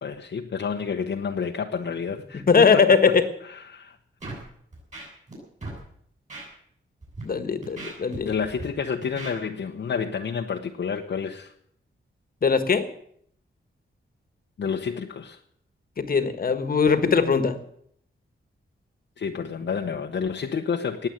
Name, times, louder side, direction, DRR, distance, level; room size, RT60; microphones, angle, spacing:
voice 1, 0.0-2.6 3.4-4.0 8.2-11.5 14.6-15.4 19.2-21.1, left 6 dB, 60° left, 2 dB, 1.0 m, -29 dB
voice 2, 2.5-3.2 7.2-8.3 12.4-12.9 16.0-17.6, left 5 dB, 45° left, 10 dB, 1.5 m, -20 dB
Scratching (performance technique), 4.2-4.4 4.7-5.3 5.6-5.8 6.3-6.4 7.0-7.2 7.6-8.6 9.0-9.3, right 2 dB, 35° right, 7.7 m, -37 dB
19.5 x 8.0 x 9.0 m, 0.67 s
wide cardioid pair, 180°, 21 cm